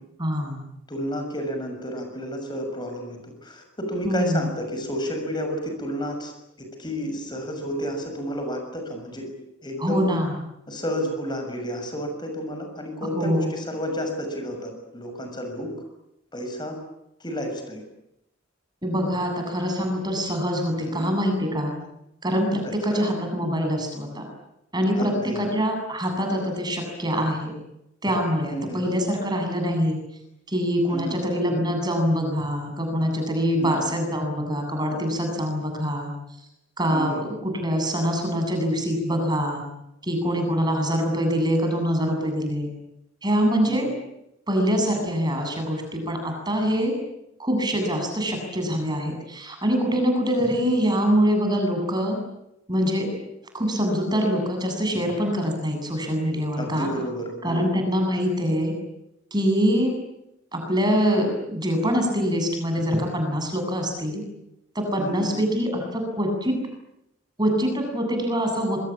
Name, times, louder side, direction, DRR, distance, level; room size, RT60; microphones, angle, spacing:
voice 1, 0.2-0.6 4.0-4.5 9.8-10.3 13.2-13.5 18.8-21.7 22.2-24.3 24.7-27.5 28.0-30.0 30.5-36.1 36.8-39.6 40.0-42.7 43.2-43.9 44.5-46.9 47.4-52.2 52.7-53.0 53.5-56.9 57.4-58.7 59.3-60.0 60.5-64.2 64.7-66.5 67.4-68.8, equal, 20° right, 4 dB, 7.9 m, -24 dB
voice 2, 0.9-6.3 6.6-9.3 9.6-10.0 10.7-15.7 16.3-16.7 17.2-17.8 20.8-21.1 22.6-23.1 24.9-25.4 28.5-28.8 30.9-31.2 33.6-33.7 36.9-37.2 43.6-43.9 56.5-57.7 65.0-65.4, equal, 20° left, 4 dB, 6.6 m, -31 dB
27.5 x 24.0 x 8.7 m, 0.84 s
head